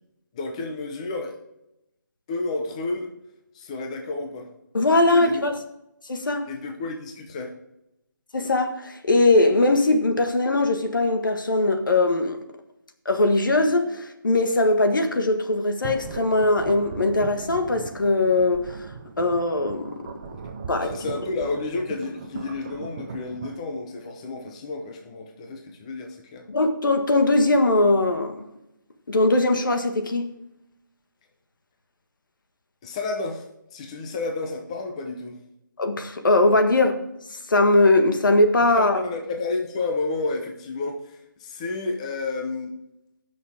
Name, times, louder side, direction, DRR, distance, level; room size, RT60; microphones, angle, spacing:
voice 1, 0.3-1.4 2.3-3.1 3.5-4.5 5.1-5.4 6.5-7.5 20.8-26.5 32.8-33.4 33.7-35.4 38.8-42.7, left 3 dB, 20° left, 0.9 m, -31 dB
voice 2, 4.7-5.6 6.1-6.5 8.3-12.4 13.0-18.7 19.2-19.9 20.7-20.9 26.5-28.5 29.1-30.3 35.8-37.0 37.5-39.0, left 2 dB, 75° left, 1.6 m, -20 dB
sound 1, 15.8-23.6, right 5 dB, 25° right, 0.6 m, -38 dB
15.0 x 6.4 x 3.6 m
hypercardioid pair, 170°, 11 cm